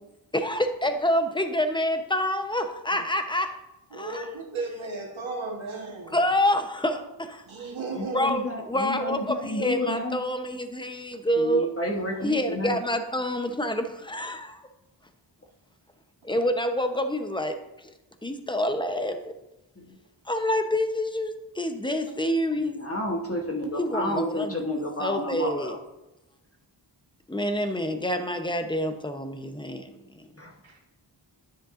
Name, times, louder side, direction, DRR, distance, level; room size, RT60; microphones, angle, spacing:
voice 1, 0.3-3.6 3.9-4.3 6.1-7.4 8.1-11.7 12.2-14.6 16.2-17.6 18.2-19.2 20.3-22.8 23.8-25.8 27.3-30.3, left 1 dB, 10° left, 7 dB, 0.8 m, -27 dB
voice 2, 3.9-6.2 7.5-8.3 12.2-12.3 30.6-30.8, right 3 dB, 90° right, -2 dB, 1.4 m, -35 dB
voice 3, 7.9-10.2 11.4-12.8 19.8-19.9 22.6-25.8 30.4-30.5, left 1 dB, 30° left, -1 dB, 1.1 m, -31 dB
10.0 x 7.5 x 2.6 m, 0.96 s
wide cardioid pair, 60°, 46 cm